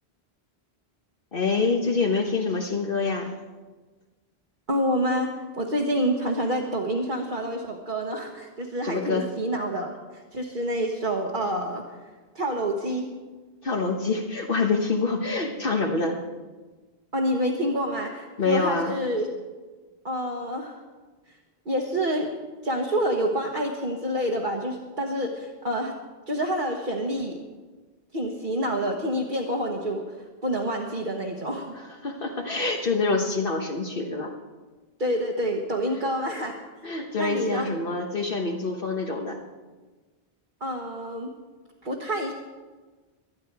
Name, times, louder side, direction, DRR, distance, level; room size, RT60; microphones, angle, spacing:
voice 1, 1.3-3.3 8.8-9.3 13.6-16.2 18.4-18.9 31.7-34.3 36.8-39.4, left 3 dB, 60° left, 2 dB, 1.3 m, -26 dB
voice 2, 4.7-5.3 5.6-9.9 10.3-11.8 12.3-13.1 17.1-19.3 20.0-20.8 21.6-22.3 22.6-25.9 26.3-27.4 28.1-30.0 30.4-31.7 35.0-36.6 37.2-37.7 40.6-41.3 41.8-42.3, equal, 55° right, -1 dB, 1.5 m, -27 dB
24.5 x 9.6 x 4.7 m, 1.3 s
omnidirectional pair, 1.0 m